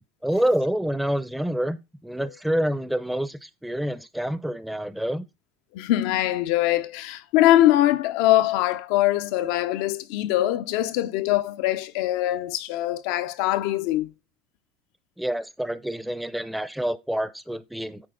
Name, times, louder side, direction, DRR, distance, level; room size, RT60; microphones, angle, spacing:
voice 1, 0.2-5.2 15.2-18.1, right 1 dB, 5° right, 0.6 m, -27 dB
voice 2, 5.7-14.1, left 14 dB, 70° left, 0.7 m, -22 dB
8.9 x 4.7 x 4.0 m
supercardioid pair, 125°, 0 cm